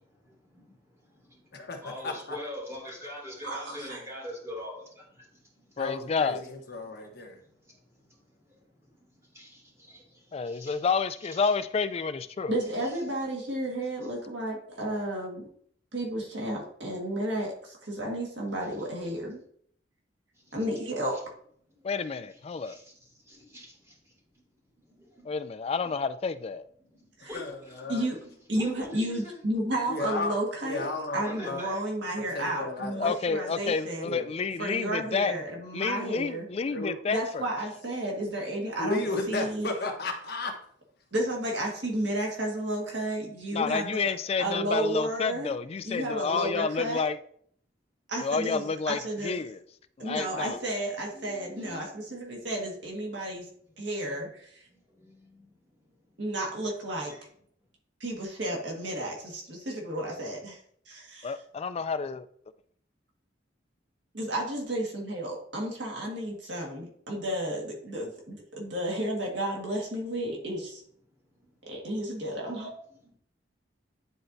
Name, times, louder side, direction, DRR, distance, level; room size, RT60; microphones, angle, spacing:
voice 1, 0.0-5.9 6.8-8.9 9.3-10.9 11.2-11.5 12.8-12.9 14.0-14.1 19.4-19.5 20.3-20.6 21.1-21.2 21.7-21.9 22.2-24.4 24.8-25.5 25.8-25.9 26.8-27.9 28.2-29.4 31.2-31.8 50.1-50.6 51.1-52.0 54.1-54.4 54.7-56.3 57.0-57.3 71.1-72.0 72.5-73.1, left 1 dB, 15° right, 2.6 m, -45 dB
voice 2, 1.5-2.4 5.8-7.4 27.3-28.0 29.9-30.3 30.6-31.6 32.2-33.1 34.0-34.3 36.7-37.0 38.7-40.5, left 2 dB, 60° left, 1.2 m, -34 dB
voice 3, 3.4-4.0 12.5-15.5 15.9-19.4 20.5-21.2 27.2-27.4 27.9-28.2 28.5-34.1 34.6-36.4 37.1-39.7 41.1-44.1 44.4-45.5 45.8-47.0 48.1-49.4 50.0-53.4 53.8-54.5 56.2-57.1 58.0-60.6 60.9-61.3 64.1-70.8 71.6-72.7, right 1 dB, 70° right, 1.7 m, -32 dB
voice 4, 5.8-6.4 10.3-12.5 21.8-22.8 25.3-26.7 33.0-35.4 35.7-37.5 43.5-47.2 48.2-49.6 50.0-50.6 61.2-62.3, left 5 dB, 35° left, 0.3 m, -30 dB
9.9 x 4.3 x 2.7 m
head